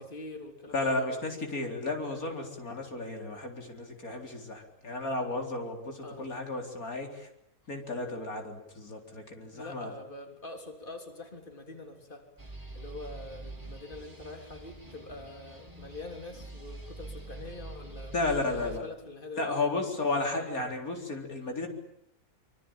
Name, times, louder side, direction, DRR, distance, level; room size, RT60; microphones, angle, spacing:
voice 1, 0.0-1.2 6.0-6.3 9.5-12.3 12.7-18.1 18.4-19.6, left 2 dB, 35° left, 4 dB, 3.6 m, -44 dB
voice 2, 0.7-7.3 7.7-9.9 18.1-18.8 19.4-21.7, left 2 dB, 85° left, 3 dB, 4.5 m, -33 dB
sound 1, 12.4-18.8, right 2 dB, 15° right, 4.8 m, -45 dB
25.5 x 25.0 x 8.9 m, 0.76 s
omnidirectional pair, 1.5 m